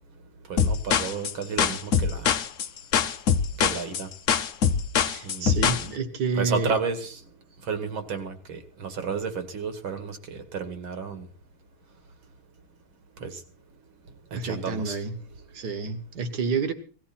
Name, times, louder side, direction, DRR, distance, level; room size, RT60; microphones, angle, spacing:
voice 1, 0.5-2.3 3.6-4.1 5.2-5.9 6.3-7.2 7.7-11.3 13.2-13.4 14.3-15.0, right 5 dB, 70° right, 8 dB, 2.8 m, -32 dB
sound 1, 0.6-5.9, left 7 dB, 55° left, 0.9 m, -23 dB
voice 2, 5.0-6.8 14.3-15.1 15.5-16.7, right 4 dB, 55° right, 10 dB, 2.0 m, -29 dB
18.5 x 14.5 x 4.4 m, 0.40 s
omnidirectional pair, 2.3 m